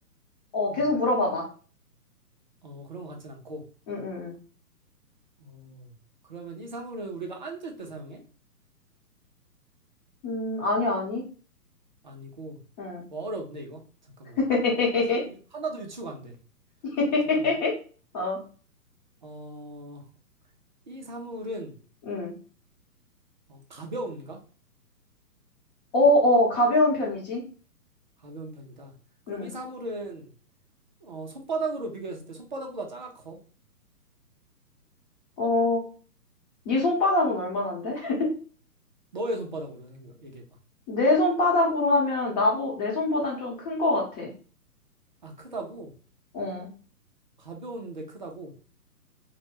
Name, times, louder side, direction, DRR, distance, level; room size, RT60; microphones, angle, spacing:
voice 1, 0.5-1.5 3.9-4.3 10.2-11.2 12.8-13.0 14.4-15.2 16.9-17.7 18.1-18.4 22.1-22.3 25.9-27.4 29.3-29.5 35.4-35.8 36.6-38.4 40.9-44.3 46.3-46.7, left 2 dB, 25° left, -2 dB, 1.0 m, -24 dB
voice 2, 2.6-3.7 5.4-5.9 6.3-8.2 12.0-12.6 13.1-13.8 14.2-14.4 15.1-15.2 15.5-16.4 17.4-17.5 19.2-20.0 20.9-21.8 23.5-24.4 28.2-28.9 29.3-30.3 31.0-33.4 39.1-40.4 45.2-45.9 47.4-48.5, right 2 dB, 30° right, 1 dB, 0.4 m, -37 dB
3.0 x 2.2 x 2.9 m, 0.39 s
figure-of-eight pair, 130°, 48 cm